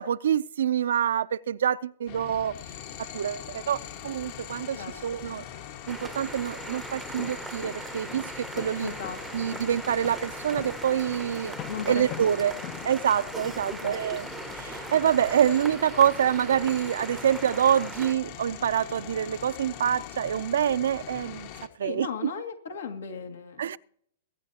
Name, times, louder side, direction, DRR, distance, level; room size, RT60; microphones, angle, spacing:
voice 1, 0.0-2.6 3.0-3.8 4.0-4.8 5.0-5.4 5.9-8.9 9.3-11.5 11.9-12.5 12.8-14.3 14.6-21.5 21.8-22.1 23.6-23.8, right 9 dB, 75° right, 0.4 m, -26 dB
sound 1, 2.1-21.7, left 9 dB, 50° left, 1.6 m, -42 dB
sound 2, 5.9-18.1, right 4 dB, 10° right, 0.7 m, -40 dB
Walk footsteps, 6.7-13.7, left 12 dB, 35° left, 0.5 m, -44 dB
voice 2, 8.8-9.6 11.7-12.8 13.7-14.4 21.8-23.8, left 6 dB, 75° left, 2.2 m, -38 dB
23.0 x 9.4 x 2.9 m
hypercardioid pair, 115°, 0 cm